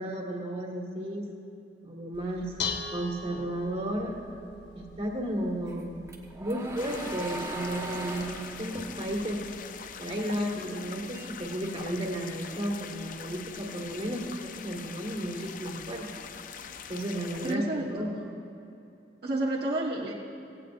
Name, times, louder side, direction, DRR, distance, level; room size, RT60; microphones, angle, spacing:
voice 1, 0.0-1.3 1.8-4.1 4.7-6.0 6.4-9.5 10.0-16.1 16.9-18.4, right 1 dB, 35° right, -1 dB, 1.8 m, -33 dB
Dishes pots and pans, 2.1-9.5, left 4 dB, 70° left, 0.9 m, -42 dB
sound 1, 5.7-10.2 10.6-12.1, right 2 dB, 15° right, 1.1 m, -40 dB
sound 2, 6.8-17.6, left 7 dB, 50° left, 0.5 m, -43 dB
voice 2, 17.4-18.2 19.2-20.1, right 2 dB, 60° right, -4 dB, 1.3 m, -30 dB
17.0 x 16.0 x 2.5 m, 2.7 s
head